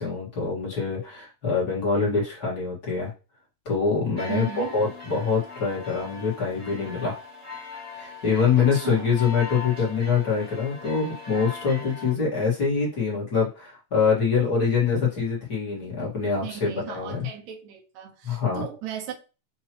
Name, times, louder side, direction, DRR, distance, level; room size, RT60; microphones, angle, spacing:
voice 1, 0.0-3.1 3.7-7.2 7.9-17.3 18.2-18.6, left 5 dB, 35° left, 2.0 m, -25 dB
sound 1, 4.2-12.1, left 5 dB, 10° right, 1.6 m, -40 dB
voice 2, 4.3-4.8 8.6-9.1 16.4-19.1, right 10 dB, 75° right, 2.3 m, -36 dB
5.9 x 2.9 x 3.0 m
omnidirectional pair, 3.4 m